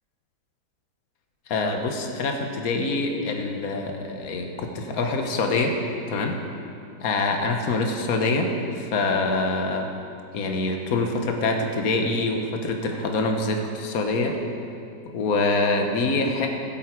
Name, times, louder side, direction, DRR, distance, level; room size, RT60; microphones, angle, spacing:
voice 1, 1.5-5.8 6.1-6.4 7.0-9.9 10.3-14.4 15.1-16.5, left 3 dB, 60° left, 3 dB, 1.5 m, -25 dB
19.5 x 8.2 x 4.6 m, 2.6 s
omnidirectional pair, 1.8 m